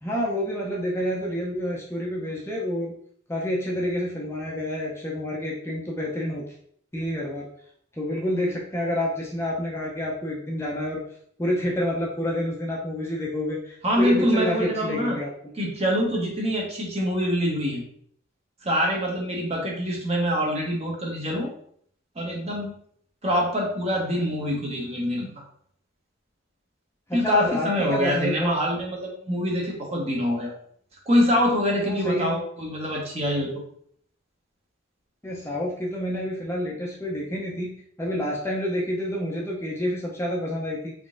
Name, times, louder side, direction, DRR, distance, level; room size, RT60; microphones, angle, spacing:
voice 1, 0.0-2.9 3.3-6.4 6.9-7.5 8.0-11.0 11.4-15.3 27.1-28.5 31.8-32.3 35.2-37.7 38.0-40.9, equal, 15° left, -4 dB, 0.5 m, -28 dB
voice 2, 13.8-15.2 15.6-17.8 18.6-21.5 22.1-22.7 23.2-25.4 27.1-30.5 31.1-33.5, equal, 30° right, -2 dB, 0.9 m, -25 dB
3.7 x 3.5 x 2.5 m, 0.63 s
head